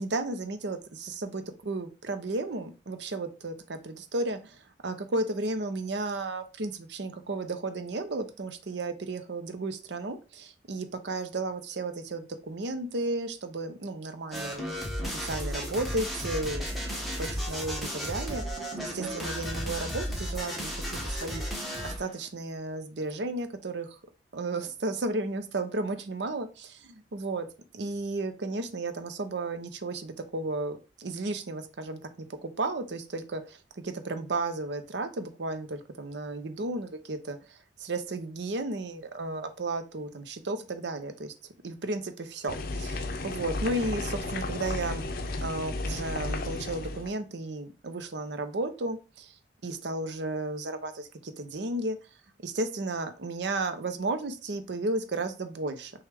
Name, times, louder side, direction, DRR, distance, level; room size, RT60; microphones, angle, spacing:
voice 1, 0.0-14.6 15.0-18.4 18.8-21.4 21.8-24.0 24.3-27.5 27.7-32.0 32.4-41.3 41.6-45.1 45.4-49.4 49.6-52.0 52.4-55.9, right 2 dB, 65° right, 9 dB, 0.6 m, -33 dB
sound 1, 14.3-22.1, equal, ahead, 1.1 m, -34 dB
sound 2, 42.5-47.1, left 2 dB, 55° left, 0.5 m, -33 dB
6.2 x 2.3 x 3.4 m, 0.32 s
head